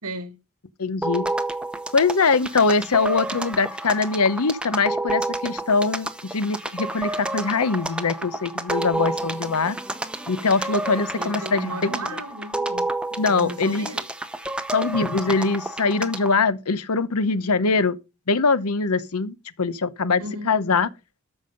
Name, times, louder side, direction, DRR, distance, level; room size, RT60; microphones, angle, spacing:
voice 1, 0.0-0.4 9.0-9.2 11.2-12.9 13.3-14.0 20.2-20.5, right 1 dB, 90° right, 1.9 m, -35 dB
voice 2, 0.8-1.2 1.9-9.8 10.3-12.1 13.2-13.9 14.7-18.0 18.3-20.9, left 4 dB, 85° left, 0.9 m, -22 dB
sound 1, 1.0-16.4, right 2 dB, 5° right, 0.7 m, -30 dB
13.5 x 5.6 x 5.2 m
head